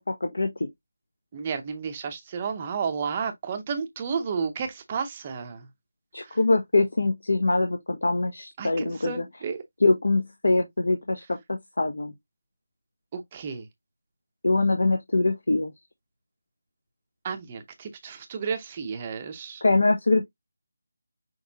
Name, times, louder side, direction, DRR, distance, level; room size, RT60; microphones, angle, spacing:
voice 1, 0.1-0.7 6.1-9.2 9.8-12.1 14.4-15.7 19.6-20.3, left 2 dB, 75° left, 1.1 m, -23 dB
voice 2, 1.3-5.7 6.2-6.4 8.6-9.6 13.1-13.7 17.2-19.6, right 6 dB, 20° right, 0.6 m, -32 dB
6.2 x 3.1 x 2.7 m
figure-of-eight pair, 175°, 0 cm